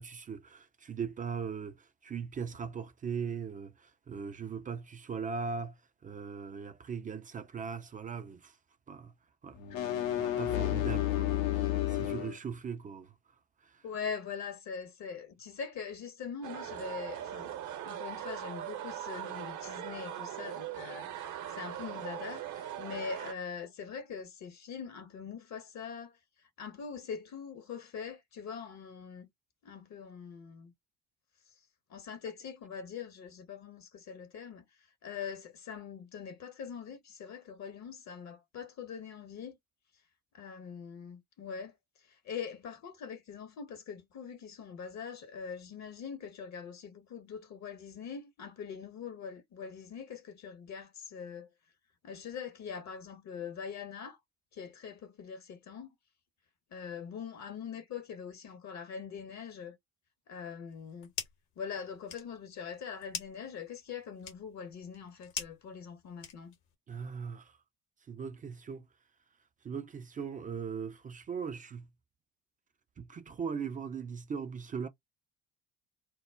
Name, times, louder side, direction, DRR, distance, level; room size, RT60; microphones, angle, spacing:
voice 1, 0.0-5.8 6.0-8.6 8.9-9.1 9.4-9.6 10.2-13.1 13.6-13.7 32.2-32.3 66.9-67.6 68.1-68.9 69.6-71.9 73.0-74.9, right 6 dB, 20° right, 0.4 m, -39 dB
sound 1, 9.6-12.4, left 13 dB, 80° left, 0.7 m, -31 dB
voice 2, 13.8-17.5 17.9-21.1 21.5-26.1 26.6-29.3 29.6-30.7 31.9-34.6 35.0-39.5 40.3-41.7 42.3-51.5 52.0-54.2 54.5-55.9 56.7-59.8 60.3-61.1 61.6-66.5, left 6 dB, 45° left, 0.7 m, -43 dB
sound 2, 16.4-23.3, right 11 dB, 45° right, 0.7 m, -40 dB
sound 3, 60.7-61.5 61.8-66.7, left 7 dB, 60° left, 1.0 m, -44 dB
2.2 x 2.0 x 3.3 m
figure-of-eight pair, 50°, 41 cm